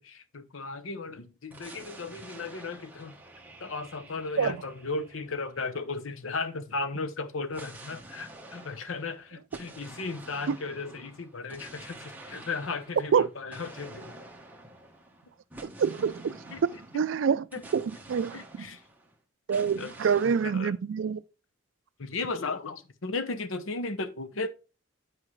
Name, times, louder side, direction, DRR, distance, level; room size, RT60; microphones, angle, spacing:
voice 1, 0.0-3.2 3.6-14.1 16.5-16.6 17.5-17.6 18.3-18.8 19.8-19.9 20.2-20.7 22.0-24.5, left 3 dB, 85° left, 0.8 m, -35 dB
sound 1, 1.5-6.2 7.5-19.1 19.5-20.6, right 2 dB, 10° right, 1.0 m, -49 dB
voice 2, 15.6-16.5 16.9-17.5 17.7-18.7 19.5-21.2, right 6 dB, 70° right, 0.3 m, -26 dB
9.7 x 4.8 x 3.1 m
head